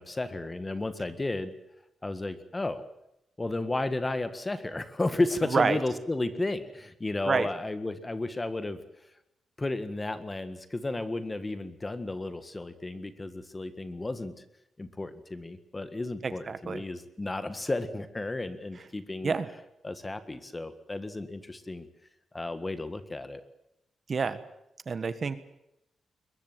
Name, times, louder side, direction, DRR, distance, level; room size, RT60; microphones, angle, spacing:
voice 1, 0.0-1.5 2.0-2.8 3.4-8.8 9.6-14.3 14.8-19.4 19.8-21.9 22.3-23.4, left 2 dB, 15° left, 12 dB, 1.7 m, -33 dB
voice 2, 16.2-16.8 19.2-19.5 24.1-24.4 24.9-25.4, right 5 dB, 40° right, 13 dB, 1.5 m, -28 dB
22.0 x 22.0 x 7.7 m, 0.82 s
wide cardioid pair, 145°, 0 cm